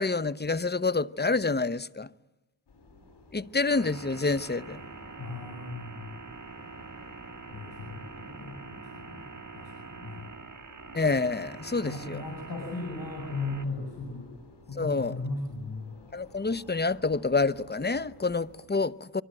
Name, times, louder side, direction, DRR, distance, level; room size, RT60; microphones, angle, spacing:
voice 1, 0.0-2.1 3.3-4.8 10.9-12.3 14.7-15.2 16.1-19.2, left 3 dB, 25° left, 0.9 m, -28 dB
sound 1, 2.7-18.6, left 2 dB, 85° left, 6.3 m, -54 dB
sound 2, 3.7-13.7, right 4 dB, 45° right, 1.9 m, -45 dB
voice 2, 5.2-6.0 7.5-10.2 11.8-14.3 14.7-15.9, left 3 dB, 60° left, 7.6 m, -37 dB
25.5 x 24.0 x 8.9 m
cardioid pair, 50°, 41 cm